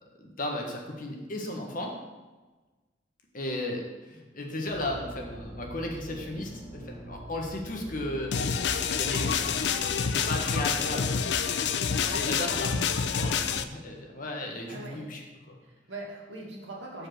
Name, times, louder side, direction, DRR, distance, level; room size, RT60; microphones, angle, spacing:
voice 1, 0.2-1.9 3.3-8.3 9.0-11.2 12.1-15.2 15.5-15.6, left 1 dB, 50° left, 1 dB, 1.3 m, -35 dB
sound 1, 4.7-9.7, equal, 15° right, 2.8 m, -44 dB
sound 2, 8.3-13.6, left 6 dB, 65° left, 0.5 m, -27 dB
voice 2, 14.7-15.1 15.6-17.1, right 2 dB, 85° right, -2 dB, 2.1 m, -41 dB
7.1 x 4.8 x 6.5 m, 1.2 s
head